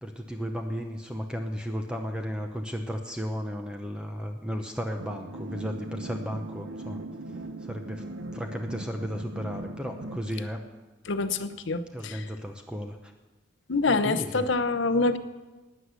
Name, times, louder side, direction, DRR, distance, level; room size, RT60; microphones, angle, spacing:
voice 1, 0.0-7.0 7.6-8.1 8.3-10.6 11.9-13.1 13.9-14.5, equal, 5° right, 4 dB, 0.8 m, -34 dB
sound 1, 5.0-10.3, right 2 dB, 70° right, 0.8 m, -39 dB
voice 2, 11.1-12.2 13.7-15.2, left 3 dB, 65° left, 12 dB, 0.8 m, -26 dB
12.5 x 9.7 x 8.2 m, 1.2 s
head